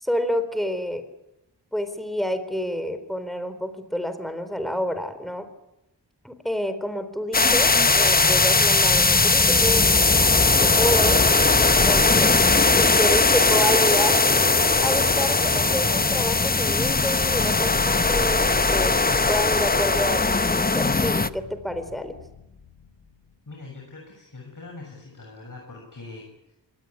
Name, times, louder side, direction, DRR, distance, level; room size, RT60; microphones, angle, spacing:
voice 1, 0.0-1.0 1.7-5.5 6.2-10.0 10.6-11.2 11.6-12.4 12.8-14.2 14.8-18.9 19.3-22.2, equal, ahead, 10 dB, 4.0 m, -29 dB
sound 1, 7.3-21.3, left 3 dB, 20° left, 0.8 m, -19 dB
sound 2, 13.6-23.4, left 6 dB, 85° left, 3.8 m, -44 dB
voice 2, 23.5-26.5, left 3 dB, 45° left, 0 dB, 7.1 m, -42 dB
24.0 x 18.5 x 9.9 m, 0.93 s
cardioid pair, 55°, 43 cm